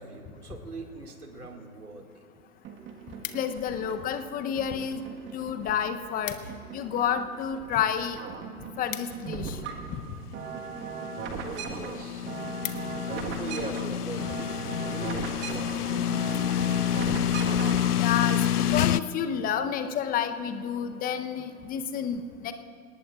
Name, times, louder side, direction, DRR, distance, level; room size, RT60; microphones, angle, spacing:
voice 1, 0.0-2.3 11.4-12.3 13.1-16.0, right 3 dB, 85° right, 3 dB, 2.4 m, -41 dB
sound 1, 2.6-4.1 4.6-6.2 6.5-7.8 8.1-18.0, right 6 dB, 25° right, 1.5 m, -38 dB
sound 2, 2.8-3.8 4.5-5.1 5.4-5.5 5.7-5.8 6.0-6.7 7.0-9.9 10.6-10.9 11.4-11.5 11.9-12.0 12.2-13.2 13.7-13.9, left 11 dB, 60° left, 1.3 m, -42 dB
voice 2, 3.3-5.0 5.3-6.4 6.7-8.2 8.8-9.6 18.0-22.5, left 8 dB, 20° left, 9 dB, 0.8 m, -30 dB
sound 3, 10.6-19.0, left 11 dB, 85° left, 0.5 m, -28 dB
28.5 x 19.0 x 2.5 m, 2.7 s
figure-of-eight pair, 110°, 44 cm